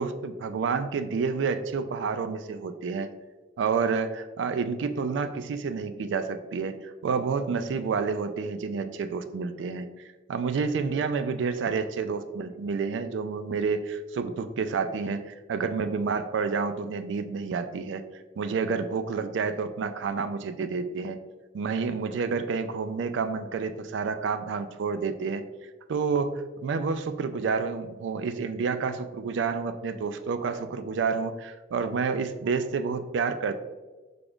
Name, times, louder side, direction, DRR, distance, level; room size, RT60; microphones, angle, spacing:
voice 1, 0.0-3.1 3.6-9.9 10.3-18.0 18.4-21.2 21.5-25.5 25.9-33.6, right 5 dB, 80° right, 9 dB, 0.3 m, -29 dB
3.8 x 3.4 x 3.5 m, 1.2 s
head